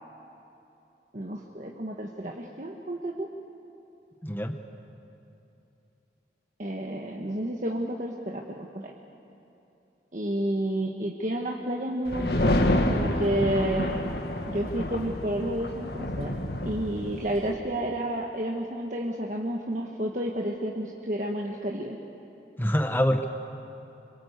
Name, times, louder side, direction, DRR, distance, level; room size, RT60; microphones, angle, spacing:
voice 1, 1.1-3.3 6.6-8.9 10.1-12.6 12.9-13.9 14.5-16.3 16.6-22.0, right 1 dB, 45° right, 0 dB, 1.4 m, -30 dB
voice 2, 4.2-4.6 22.6-23.3, equal, 10° left, 6 dB, 0.9 m, -25 dB
sound 1, 12.1-17.5, left 1 dB, 65° left, 1.7 m, -28 dB
26.0 x 22.5 x 8.1 m, 2.9 s
head